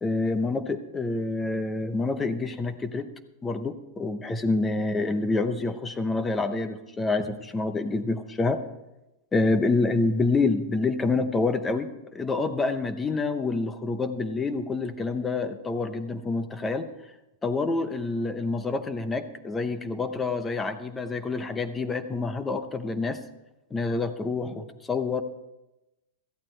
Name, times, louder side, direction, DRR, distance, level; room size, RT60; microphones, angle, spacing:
voice 1, 0.0-3.1 3.4-8.6 9.3-16.9 17.4-23.2 23.7-25.2, left 3 dB, 10° left, 10 dB, 0.8 m, -27 dB
17.0 x 14.0 x 3.3 m, 0.96 s
supercardioid pair, 170°, 0 cm